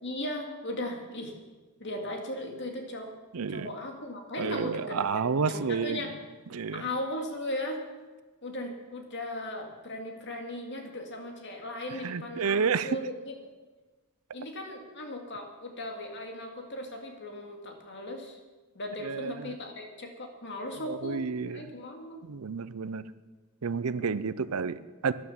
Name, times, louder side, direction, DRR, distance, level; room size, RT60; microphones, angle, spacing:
voice 1, 0.0-1.3 1.8-3.1 3.5-6.1 6.7-7.8 8.4-13.3 14.3-18.4 18.7-22.2, left 1 dB, 50° left, 3 dB, 2.2 m, -37 dB
voice 2, 3.3-3.7 4.4-6.0 6.5-6.8 12.0-13.0 19.0-19.5 20.9-21.7 22.2-23.0 23.6-25.1, right 5 dB, 75° right, 15 dB, 0.6 m, -30 dB
12.5 x 11.0 x 7.3 m, 1.3 s
head